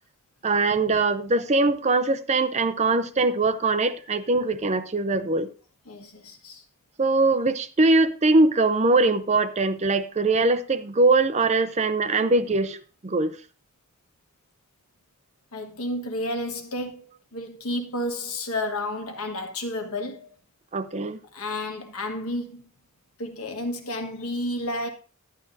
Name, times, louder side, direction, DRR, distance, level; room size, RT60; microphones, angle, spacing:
voice 1, 0.4-5.5 7.0-12.8 13.0-13.3 20.7-21.2, right 3 dB, 30° right, 0.5 m, -22 dB
voice 2, 5.9-6.6 15.5-17.1 17.3-20.3 21.3-22.7 23.2-24.9, left 1 dB, 75° left, 1.6 m, -31 dB
11.0 x 11.0 x 2.7 m
head